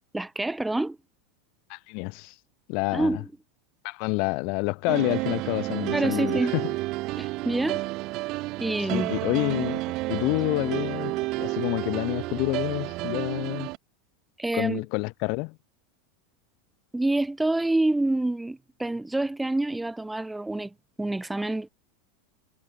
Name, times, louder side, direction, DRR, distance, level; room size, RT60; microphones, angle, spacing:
voice 1, 0.1-1.0 2.9-3.2 5.9-6.5 7.2-7.8 8.6-9.1 14.4-14.8 16.9-21.7, right 2 dB, 5° right, 1.8 m, -27 dB
voice 2, 1.7-2.3 2.7-3.2 3.8-6.7 8.8-9.8 10.1-13.7 14.5-15.6, left 33 dB, 45° left, 2.4 m, -28 dB
sound 1, 4.9-13.8, right 21 dB, 35° right, 2.4 m, -31 dB
supercardioid pair, 170°, 0 cm